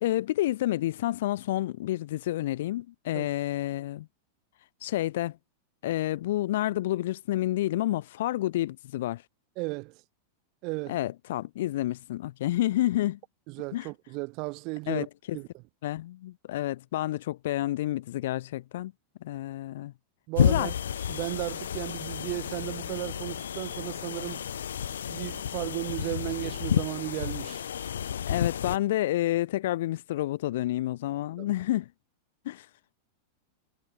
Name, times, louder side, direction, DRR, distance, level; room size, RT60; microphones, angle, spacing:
voice 1, 0.0-4.1 4.8-5.4 5.8-9.2 10.9-13.2 13.7-13.9 14.9-15.4 15.8-18.9 19.2-19.9 20.4-20.7 28.2-31.9 32.4-32.7, left 15 dB, 70° left, 1.4 m, -29 dB
voice 2, 9.6-10.0 10.6-11.0 13.5-15.1 15.3-15.5 20.3-20.7 21.1-24.5 25.1-27.6 31.4-31.5, right 28 dB, 50° right, 1.1 m, -35 dB
sound 1, 20.3-28.8, left 9 dB, 85° left, 1.9 m, -31 dB
hypercardioid pair, 110°, 0 cm